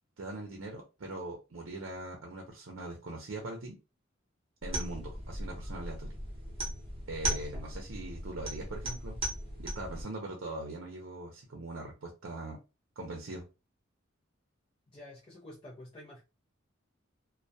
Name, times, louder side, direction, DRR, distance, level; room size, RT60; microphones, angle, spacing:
voice 1, 0.2-3.8 4.6-6.1 7.1-9.2 9.6-12.6 13.0-13.4, right 2 dB, 75° right, 0.6 m, -41 dB
sound 1, 4.6-10.0, right 1 dB, 30° right, 0.8 m, -37 dB
voice 2, 14.9-16.2, left 1 dB, 30° left, 0.5 m, -49 dB
2.2 x 2.2 x 2.6 m
head